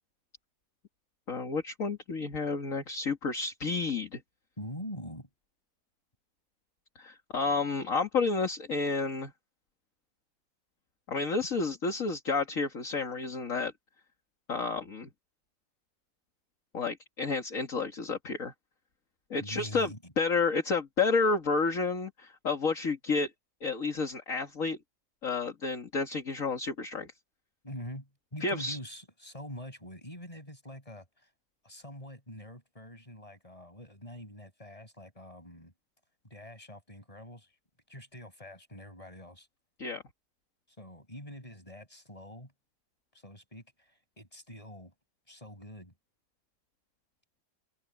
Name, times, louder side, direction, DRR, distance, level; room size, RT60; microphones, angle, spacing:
voice 1, 1.3-4.2 7.0-9.3 11.1-13.7 14.5-15.1 16.7-18.5 19.3-19.9 20.2-23.3 23.6-24.8 25.2-27.1 28.4-28.8 39.8-40.0, left 4 dB, 45° left, 2.4 m, -30 dB
voice 2, 4.6-5.3 19.4-20.1 27.6-31.3 31.6-35.7 36.2-37.6 37.9-39.5 40.8-42.5 43.1-44.9 45.3-45.9, equal, 20° left, 6.7 m, -45 dB
omnidirectional pair, 1.9 m